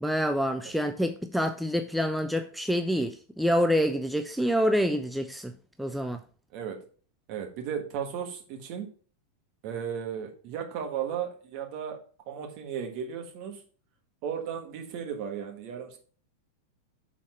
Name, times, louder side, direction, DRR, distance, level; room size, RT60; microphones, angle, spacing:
voice 1, 0.0-5.5 5.8-6.2, equal, ahead, 0.4 m, -27 dB
voice 2, 6.5-6.8 7.3-8.9 9.6-13.6 14.2-16.0, right 8 dB, 45° right, 1.5 m, -35 dB
6.2 x 4.2 x 5.3 m
figure-of-eight pair, 90°, 0 cm